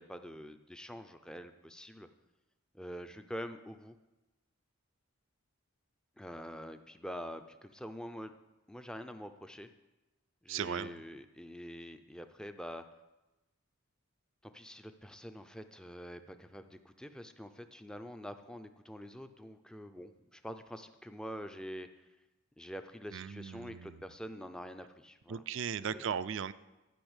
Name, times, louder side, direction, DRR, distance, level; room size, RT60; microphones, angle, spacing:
voice 1, 0.0-2.1 2.7-4.0 6.2-8.3 8.7-9.7 10.4-12.8 14.4-22.1 22.6-25.5 25.8-26.1, equal, 5° left, 8 dB, 0.5 m, -46 dB
voice 2, 10.5-11.0 23.1-24.0 25.3-26.5, right 7 dB, 55° right, 14 dB, 0.4 m, -37 dB
12.5 x 5.5 x 8.0 m, 1.1 s
head